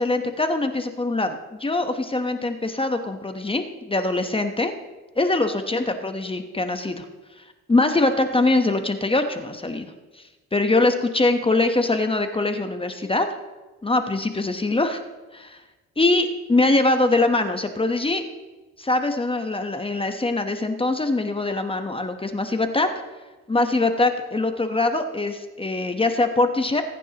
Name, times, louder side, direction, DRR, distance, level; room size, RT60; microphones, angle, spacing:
voice 1, 0.0-4.7 5.2-7.0 7.7-9.9 10.5-13.3 13.8-15.0 15.3-15.6 16.0-18.2 18.8-22.9 23.5-26.8, left 2 dB, 20° left, 7 dB, 1.0 m, -23 dB
20.5 x 9.8 x 3.0 m, 1.2 s
cardioid pair, 90°, 30 cm